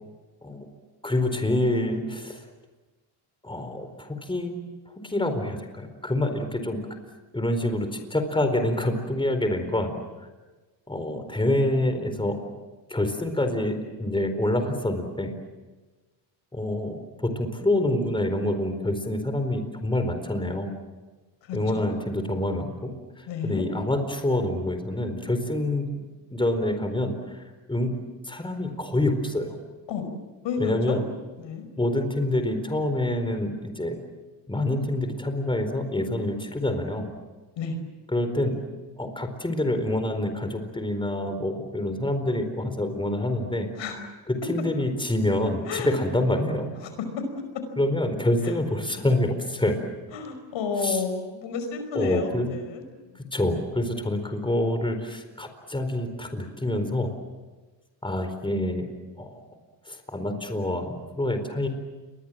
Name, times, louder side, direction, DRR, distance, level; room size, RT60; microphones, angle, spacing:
voice 1, 1.0-2.4 3.4-4.5 4.9-6.8 7.3-10.3 10.9-12.4 12.9-15.3 16.5-20.7 21.5-22.9 23.2-25.9 26.3-27.9 28.2-29.6 30.6-31.0 31.8-34.0 34.5-37.1 38.1-38.6 39.0-43.7 44.3-46.7 47.8-49.8 50.8-51.0 51.9-52.5 53.2-57.1 58.0-58.9 59.2-59.4 59.9-61.7, left 1 dB, 10° left, 7 dB, 4.3 m, -27 dB
voice 2, 21.4-21.9 23.3-23.7 29.9-30.0 30.4-31.0 31.4-31.7 37.6-37.8 43.8-44.0 45.7-46.0 46.8-47.4 48.4-48.5 50.1-53.3, left 5 dB, 80° left, 8 dB, 5.4 m, -31 dB
29.0 x 22.5 x 7.6 m, 1.2 s
cardioid pair, 90°, 44 cm